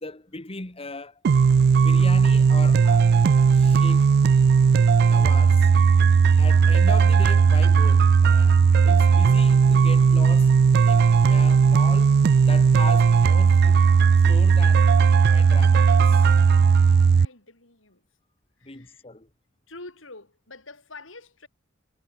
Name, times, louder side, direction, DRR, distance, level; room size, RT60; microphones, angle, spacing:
voice 1, 0.0-1.2 1.8-3.1 3.5-4.1 5.1-5.7 6.4-10.5 10.8-12.2 12.5-13.8 14.2-14.9 15.3-16.3 18.6-19.3, left 3 dB, 30° left, 2.1 m, -38 dB
sound 1, 1.2-17.3, right 5 dB, 55° right, 0.3 m, -17 dB
voice 2, 17.1-18.0 18.6-19.0 19.7-21.5, left 2 dB, 90° left, 7.1 m, -46 dB
head